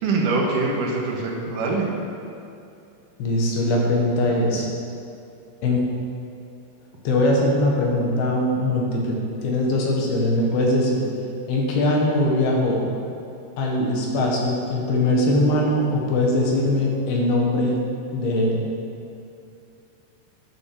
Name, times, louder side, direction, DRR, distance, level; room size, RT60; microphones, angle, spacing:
voice 1, 0.0-1.9, right 3 dB, 60° right, -2 dB, 2.8 m, -23 dB
voice 2, 3.2-4.7 5.6-5.8 7.1-11.0 11.5-12.8 13.6-17.8 18.1-18.6, left 1 dB, 70° left, -1 dB, 3.5 m, -21 dB
11.0 x 7.7 x 7.0 m, 2.6 s
omnidirectional pair, 4.7 m